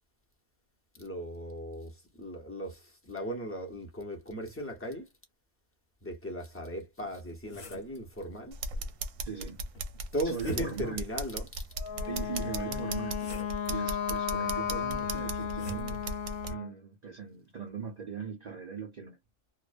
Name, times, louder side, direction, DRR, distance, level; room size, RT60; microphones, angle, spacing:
voice 1, 0.9-5.1 6.0-8.6 10.1-11.5, equal, 15° left, 0.6 m, -37 dB
sound 1, 7.0-8.0 9.7-11.0 12.4-13.7 15.0-15.9, equal, 45° left, 0.9 m, -45 dB
sound 2, 8.5-16.5, right 3 dB, 70° right, 0.9 m, -38 dB
voice 2, 9.3-9.6 10.2-11.1 12.1-16.1 16.5-19.2, right 6 dB, 85° right, 0.3 m, -40 dB
Wind instrument woodwind instrument, 11.8-16.7, left 8 dB, 80° left, 1.1 m, -34 dB
2.4 x 2.1 x 2.4 m
omnidirectional pair, 1.5 m